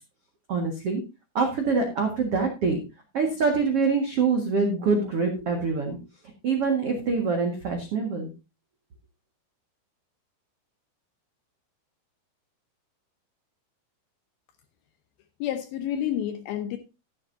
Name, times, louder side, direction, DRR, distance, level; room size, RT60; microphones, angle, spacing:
voice 1, 0.5-1.0 1.3-2.8 3.1-6.0 6.4-8.3, right 4 dB, 65° right, 3 dB, 1.4 m, -25 dB
voice 2, 15.4-16.8, left 10 dB, 80° left, 6 dB, 2.2 m, -29 dB
13.5 x 11.0 x 2.7 m, 0.27 s
omnidirectional pair, 5.6 m